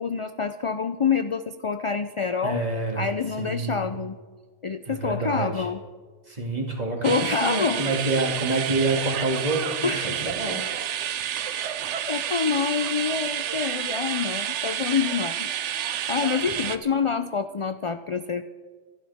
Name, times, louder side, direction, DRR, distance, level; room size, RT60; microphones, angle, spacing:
voice 1, 0.0-2.6 3.0-4.2 4.6-5.8 7.0-7.8 9.8-10.2 12.1-15.5 15.8-18.4, left 5 dB, 50° left, 10 dB, 0.4 m, -27 dB
voice 2, 2.4-3.1 3.4-3.9 4.9-5.7 6.3-10.6 11.0-11.1, right 2 dB, 35° right, -1 dB, 2.6 m, -27 dB
sound 1, 7.0-16.8, right 10 dB, 75° right, 1.0 m, -30 dB
26.0 x 11.5 x 3.6 m, 1.4 s
omnidirectional pair, 1.2 m